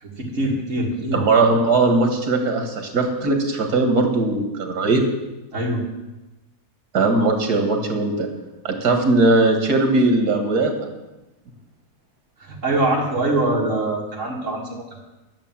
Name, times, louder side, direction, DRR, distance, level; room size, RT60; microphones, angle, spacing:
voice 1, 0.0-1.2 5.5-5.8 12.4-14.8, right 2 dB, 50° right, -2 dB, 2.9 m, -23 dB
voice 2, 1.1-5.0 6.9-8.3 8.6-10.7, right 3 dB, 80° right, 4 dB, 2.3 m, -19 dB
12.0 x 6.9 x 7.4 m, 1.0 s
omnidirectional pair, 1.7 m